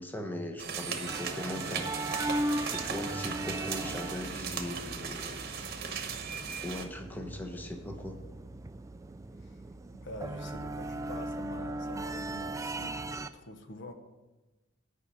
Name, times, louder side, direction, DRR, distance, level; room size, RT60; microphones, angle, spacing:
voice 1, 0.0-1.9 2.6-5.4 5.9-6.3 6.6-8.2, left 1 dB, 10° left, 4 dB, 0.8 m, -39 dB
sound 1, 0.6-6.8, right 6 dB, 50° right, 1.0 m, -37 dB
sound 2, 1.1-13.3, right 1 dB, 15° right, 0.3 m, -38 dB
voice 2, 9.9-13.9, left 1 dB, 60° left, 7 dB, 0.9 m, -46 dB
9.7 x 5.4 x 7.7 m, 1.1 s
head